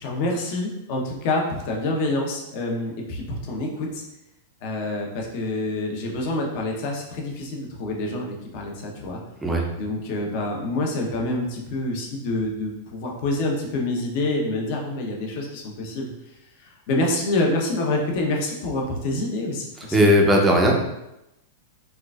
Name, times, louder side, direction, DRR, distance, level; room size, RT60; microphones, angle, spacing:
voice 1, 0.0-4.0 4.6-9.2 9.8-16.1 16.6-20.0, left 2 dB, 50° left, 0 dB, 0.8 m, -27 dB
voice 2, 19.9-20.7, equal, 10° right, -1 dB, 0.6 m, -17 dB
4.4 x 2.4 x 2.4 m, 0.90 s
supercardioid pair, 145°, 0 cm